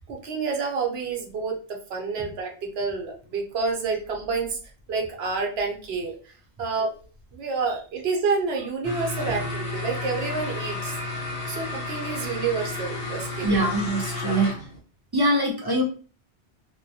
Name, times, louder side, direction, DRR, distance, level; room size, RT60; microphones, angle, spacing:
voice 1, 0.1-1.5 1.9-4.6 4.9-6.1 6.6-6.9 7.3-10.9 11.5-13.5 14.2-14.5, right 4 dB, 75° right, 2 dB, 0.9 m, -28 dB
sound 1, 8.8-14.8, left 2 dB, 40° left, 0.7 m, -32 dB
voice 2, 13.4-14.5 15.1-15.8, right 1 dB, 35° right, -2 dB, 0.3 m, -23 dB
2.2 x 2.1 x 2.6 m, 0.39 s
omnidirectional pair, 1.1 m